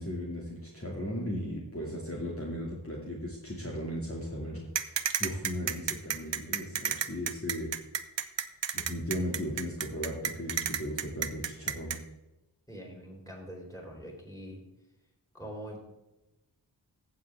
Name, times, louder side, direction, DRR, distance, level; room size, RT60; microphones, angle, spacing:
voice 1, 0.0-7.7 8.7-12.0, equal, 30° left, -4 dB, 2.3 m, -36 dB
sound 1, 4.7-12.0, right 8 dB, 80° right, 0.8 m, -31 dB
voice 2, 12.7-14.6 15.3-15.8, equal, 10° left, -1 dB, 4.1 m, -43 dB
15.0 x 7.4 x 3.5 m, 1.0 s
wide cardioid pair, 65°, 43 cm